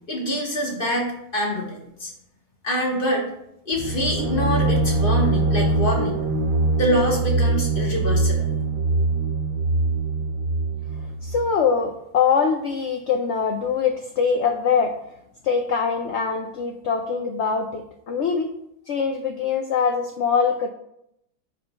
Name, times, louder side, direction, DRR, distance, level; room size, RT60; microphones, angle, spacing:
voice 1, 0.1-2.1 2.6-3.3 3.6-6.2 6.8-8.5, equal, 35° left, -2 dB, 1.6 m, -25 dB
sound 1, 3.7-11.4, right 2 dB, 85° right, 0.4 m, -23 dB
voice 2, 11.0-15.0 15.4-18.5 18.9-20.7, left 6 dB, 75° left, 4 dB, 0.6 m, -23 dB
7.4 x 2.7 x 5.6 m, 0.79 s
omnidirectional pair, 1.7 m